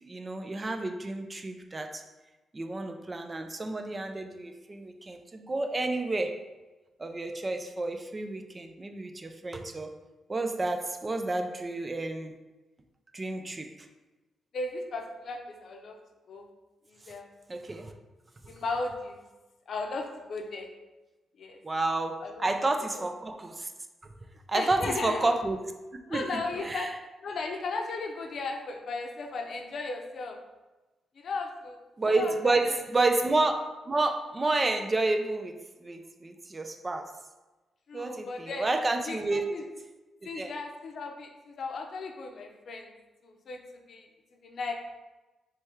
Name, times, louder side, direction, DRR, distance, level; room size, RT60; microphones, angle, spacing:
voice 1, 0.0-2.0 2.5-6.4 7.0-9.9 10.3-12.3 13.1-13.7 17.5-17.9 21.6-23.7 24.5-25.6 26.1-26.2 26.6-26.9 32.0-37.1 37.9-39.5 40.3-40.5, right 2 dB, 25° right, 5 dB, 0.4 m, -30 dB
voice 2, 14.5-16.0 16.3-16.5 16.9-17.3 18.5-19.2 19.7-20.7 21.4-21.6 22.2-22.5 22.9-23.1 24.5-25.3 26.1-26.9 27.2-30.4 31.2-31.8 32.2-32.7 37.9-38.7 39.1-39.6 40.2-42.9 43.2-44.1 44.4-44.7, left 3 dB, 60° left, 2 dB, 0.6 m, -36 dB
3.4 x 3.2 x 4.4 m, 1.1 s
cardioid pair, 100°, 0 cm